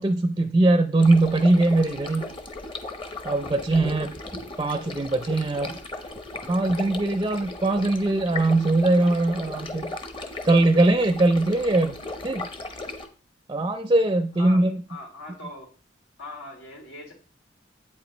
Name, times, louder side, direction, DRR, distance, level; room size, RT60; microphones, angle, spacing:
voice 1, 0.0-2.3 3.2-5.8 6.5-9.9 10.4-12.0 12.2-12.4 13.5-14.8, right 2 dB, 25° right, 9 dB, 0.4 m, -21 dB
sound 1, 1.0-13.1, left 2 dB, 30° left, 0.9 m, -37 dB
voice 2, 14.4-15.7 16.2-17.1, left 1 dB, 90° left, 0 dB, 2.9 m, -40 dB
8.4 x 7.8 x 3.1 m, 0.37 s
head